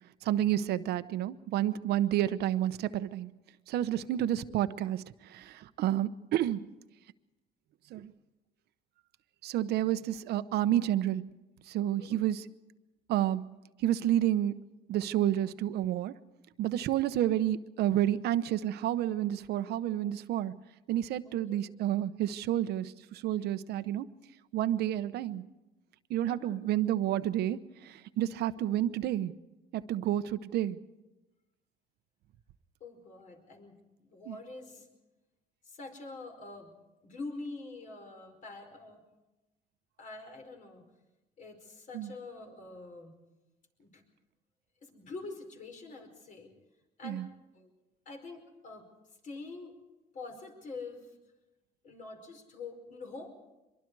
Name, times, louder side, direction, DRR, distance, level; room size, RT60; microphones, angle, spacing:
voice 1, 0.2-3.3 3.7-6.7 7.9-8.1 9.4-11.2 11.7-12.4 13.1-13.5 13.8-14.6 14.9-16.2 16.6-20.6 20.9-24.1 24.5-25.4 26.1-29.3 29.7-30.8 34.3-34.4 41.9-42.1 47.0-47.3, right 12 dB, 75° right, 13 dB, 0.9 m, -30 dB
voice 2, 21.2-21.6 26.2-26.7 32.8-33.8 34.1-34.9 35.6-36.7 37.0-39.0 40.0-40.8 41.4-43.1 43.8-44.0 44.8-46.5 47.0-47.3 47.5-47.7 48.0-48.9 49.2-49.8 50.1-51.1 51.8-53.3, left 3 dB, 50° left, 4 dB, 4.9 m, -45 dB
24.5 x 23.0 x 4.7 m, 1.0 s
cardioid pair, 110°, 17 cm